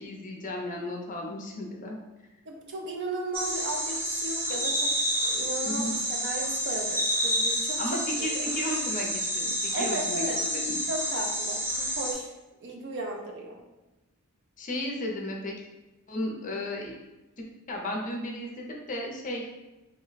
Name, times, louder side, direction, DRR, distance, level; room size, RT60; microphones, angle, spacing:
voice 1, 0.0-2.0 5.6-5.9 7.8-10.8 14.6-15.5 16.1-16.9 17.7-19.4, left 1 dB, 35° left, 0 dB, 0.5 m, -34 dB
voice 2, 2.5-4.9 5.2-8.0 8.3-8.4 9.7-10.4 10.9-12.3 12.6-13.6, right 2 dB, 55° right, 1 dB, 0.5 m, -35 dB
sound 1, 3.3-12.1, equal, 10° right, 0.5 m, -29 dB
3.2 x 2.1 x 3.9 m, 1.0 s
head